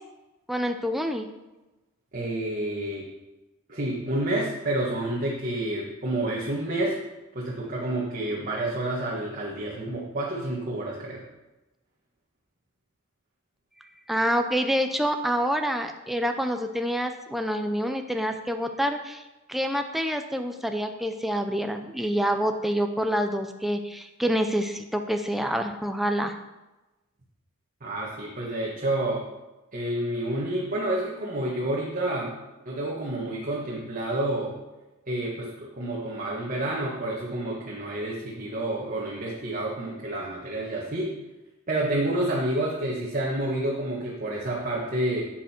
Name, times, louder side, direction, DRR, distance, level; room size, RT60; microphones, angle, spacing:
voice 1, 0.5-1.3 14.1-19.2 19.5-26.4, equal, ahead, 5 dB, 0.6 m, -27 dB
voice 2, 2.1-3.1 3.7-7.0 7.3-11.2 27.8-29.2 29.7-32.3 32.6-34.6 35.1-41.1 41.7-45.3, right 1 dB, 40° right, -4 dB, 1.7 m, -29 dB
11.5 x 7.8 x 4.5 m, 1.1 s
head